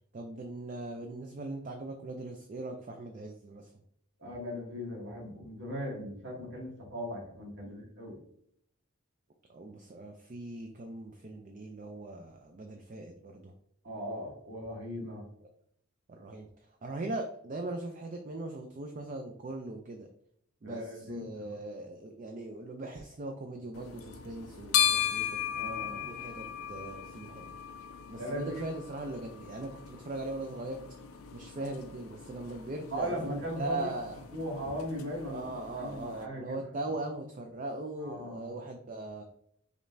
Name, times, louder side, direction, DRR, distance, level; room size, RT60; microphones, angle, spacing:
voice 1, 0.1-3.7 7.6-7.7 9.5-13.5 16.1-20.1 20.6-25.4 26.1-27.5 28.1-30.8 31.3-34.2 35.3-39.2, right 2 dB, 35° right, 4 dB, 0.4 m, -40 dB
voice 2, 4.2-8.2 13.8-15.2 20.6-21.5 25.5-26.1 28.2-28.5 32.9-33.9 34.3-35.4 35.8-36.9 38.0-38.5, equal, 55° right, -2 dB, 1.6 m, -38 dB
sound 1, 23.7-36.3, left 10 dB, 85° left, 0.5 m, -37 dB
5.1 x 3.2 x 2.6 m, 0.69 s
head